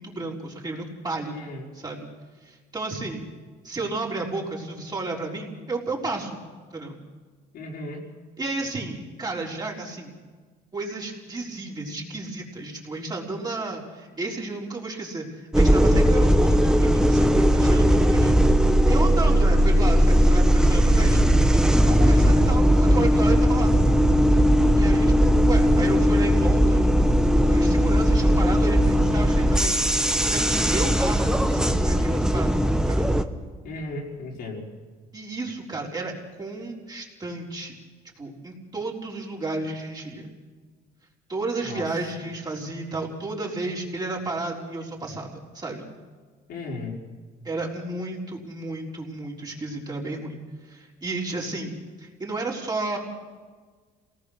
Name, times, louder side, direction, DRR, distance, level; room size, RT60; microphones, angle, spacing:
voice 1, 0.0-1.5 1.7-2.1 2.4-3.3 3.6-6.4 6.7-7.0 8.4-10.1 10.7-18.3 18.6-21.2 21.8-23.7 24.8-26.9 27.3-29.9 30.2-32.6 32.9-33.1 35.1-37.7 38.2-40.3 41.3-45.9 47.4-50.4 50.6-53.0, right 2 dB, 25° right, -2 dB, 4.1 m, -32 dB
voice 2, 1.3-1.7 7.5-8.0 20.8-21.2 33.6-34.7 41.6-42.1 46.5-47.0, left 2 dB, 70° left, -2 dB, 5.0 m, -36 dB
sound 1, 15.5-33.2, equal, 5° right, 1.1 m, -18 dB
27.5 x 18.5 x 6.5 m, 1.5 s
cardioid pair, 110°, 17 cm